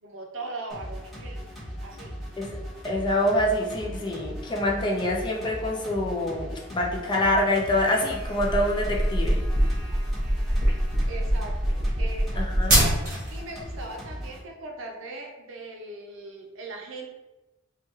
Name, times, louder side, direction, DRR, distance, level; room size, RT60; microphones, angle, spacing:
voice 1, 0.0-1.5 1.8-2.2 11.1-12.5 13.3-17.1, right 2 dB, 70° right, 1 dB, 0.5 m, -39 dB
sound 1, 0.7-14.4, equal, ahead, 0.8 m, -38 dB
voice 2, 2.8-9.4 12.4-12.8, left 1 dB, 25° left, -1 dB, 0.4 m, -26 dB
sound 2, 8.3-13.4, right 1 dB, 45° right, 0.9 m, -24 dB
3.2 x 2.3 x 3.0 m, 1.1 s
head